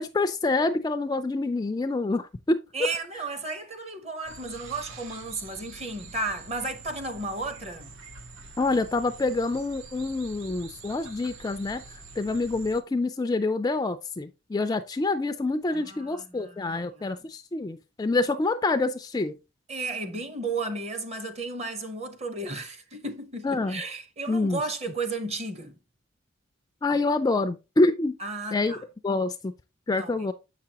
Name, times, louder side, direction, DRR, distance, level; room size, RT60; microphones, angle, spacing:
voice 1, 0.0-2.6 8.6-19.4 23.4-23.8 24.3-24.6 26.8-28.2 28.5-28.8 29.0-29.5 29.9-30.3, left 3 dB, 20° left, 0.3 m, -26 dB
voice 2, 2.7-7.9 15.7-17.2 19.7-25.8 28.2-28.8 29.9-30.3, right 3 dB, 30° right, 0.8 m, -34 dB
sound 1, 4.2-12.8, right 4 dB, 70° right, 0.8 m, -46 dB
7.3 x 5.8 x 2.8 m
head